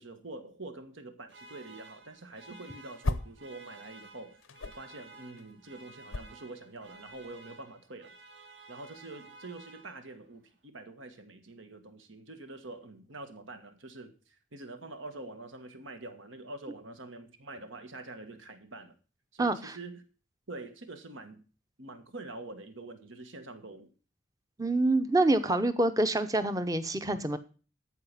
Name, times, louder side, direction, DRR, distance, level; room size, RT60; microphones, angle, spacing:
voice 1, 0.0-4.4 4.7-8.1 8.7-19.0 19.3-20.0 20.5-21.4 21.8-23.9, right 2 dB, 80° right, 8 dB, 1.6 m, -45 dB
sound 1, 1.3-10.3, right 3 dB, 60° right, 2.2 m, -53 dB
sound 2, 1.9-3.5 3.8-7.5, left 2 dB, 90° left, 0.8 m, -38 dB
voice 2, 24.6-27.4, right 2 dB, 15° right, 11 dB, 0.7 m, -26 dB
13.5 x 4.9 x 7.4 m, 0.38 s
head